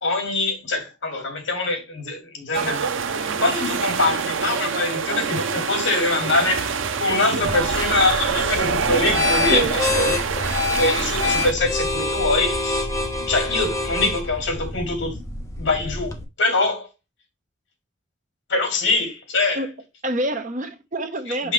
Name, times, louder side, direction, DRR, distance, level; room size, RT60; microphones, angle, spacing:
voice 1, 0.0-10.2 10.4-12.9 13.3-15.2 15.6-16.9 18.5-19.6 21.3-21.5, left 2 dB, 75° left, 2.4 m, -24 dB
sound 1, 2.5-11.5, right 6 dB, 85° right, 0.7 m, -25 dB
sound 2, 7.4-16.2, left 3 dB, 15° left, 0.9 m, -27 dB
voice 2, 20.0-21.5, right 1 dB, 40° right, 0.9 m, -26 dB
6.4 x 5.6 x 3.2 m
head